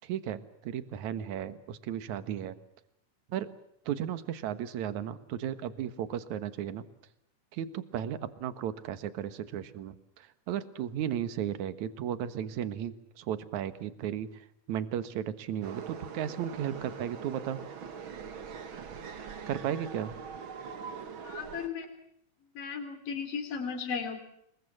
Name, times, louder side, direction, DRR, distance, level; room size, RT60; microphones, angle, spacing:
voice 1, 0.0-2.6 3.3-3.5 3.9-6.8 7.5-17.6 18.9-19.0 19.5-20.2, right 10 dB, 70° right, 13 dB, 2.7 m, -35 dB
sound 1, 15.6-21.7, right 6 dB, 45° right, 2.1 m, -42 dB
voice 2, 21.2-21.9 22.5-24.2, left 6 dB, 50° left, 5 dB, 4.3 m, -35 dB
26.5 x 22.5 x 7.3 m, 0.74 s
omnidirectional pair, 3.6 m